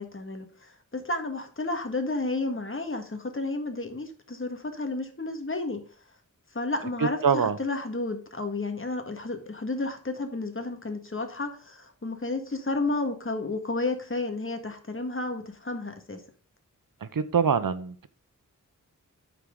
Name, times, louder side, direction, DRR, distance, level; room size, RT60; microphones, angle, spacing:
voice 1, 0.0-5.8 6.5-16.2, left 2 dB, 40° left, 5 dB, 1.7 m, -32 dB
voice 2, 7.2-7.6 17.1-18.1, right 6 dB, 85° right, 12 dB, 0.8 m, -24 dB
12.0 x 4.7 x 3.8 m, 0.40 s
wide cardioid pair, 85°, 33 cm